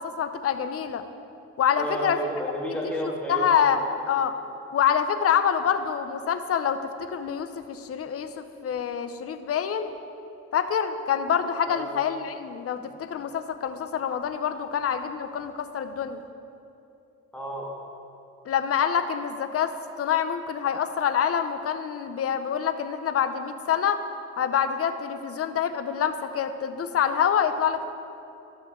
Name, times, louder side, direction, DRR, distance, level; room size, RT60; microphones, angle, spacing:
voice 1, 0.2-1.0 1.6-2.2 3.3-4.3 4.7-9.9 10.5-16.2 18.5-24.0 24.3-27.9, left 8 dB, 50° left, 10 dB, 0.7 m, -26 dB
voice 2, 1.8-3.8 11.7-11.9 14.6-14.7 17.3-17.7, equal, 5° left, -4 dB, 1.8 m, -31 dB
13.0 x 6.6 x 3.7 m, 2.8 s
cardioid pair, 90°, 30 cm